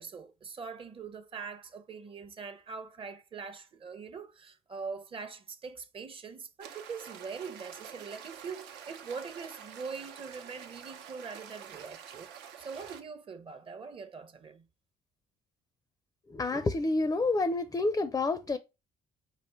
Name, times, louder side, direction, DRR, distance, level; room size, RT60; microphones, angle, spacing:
voice 1, 0.0-12.3 12.6-14.7, right 5 dB, 30° right, 0.7 m, -43 dB
sound 1, 6.6-13.0, right 8 dB, 90° right, 0.8 m, -48 dB
voice 2, 16.3-18.6, left 3 dB, 20° left, 0.4 m, -28 dB
5.0 x 2.5 x 4.3 m
cardioid pair, 110°, 17 cm